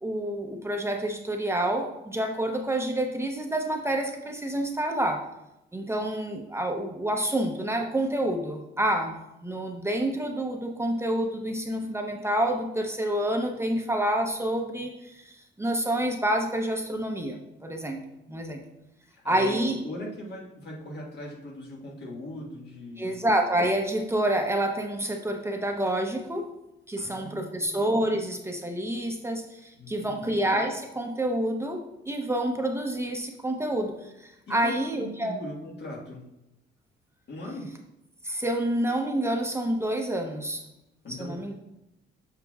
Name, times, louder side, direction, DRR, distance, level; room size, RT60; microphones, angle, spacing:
voice 1, 0.0-5.2 5.7-9.1 9.4-18.0 18.3-18.6 19.2-19.8 23.0-26.4 26.9-35.4 38.2-40.6 41.2-41.5, right 1 dB, 15° right, 2 dB, 0.7 m, -28 dB
voice 2, 19.1-23.1 27.0-27.8 29.8-30.3 34.5-36.3 37.3-37.8 41.0-41.4, left 1 dB, 60° left, -1 dB, 1.6 m, -39 dB
7.0 x 5.7 x 2.3 m, 0.90 s
cardioid pair, 90°, 20 cm